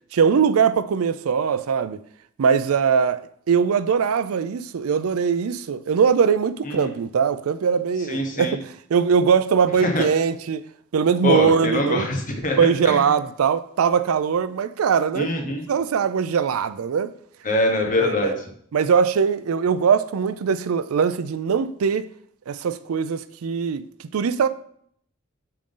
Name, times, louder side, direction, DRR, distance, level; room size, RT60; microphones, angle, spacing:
voice 1, 0.1-2.0 2.4-3.2 3.5-10.6 10.9-12.1 12.6-15.3 15.7-17.1 18.0-18.4 18.7-22.1 22.5-23.8 24.1-24.5, right 6 dB, 80° right, 0.4 m, -21 dB
voice 2, 8.1-8.6 9.8-10.1 11.2-12.6 12.8-13.0 15.1-15.6 17.4-18.3, left 1 dB, 40° left, 1.3 m, -23 dB
8.7 x 3.7 x 3.8 m
head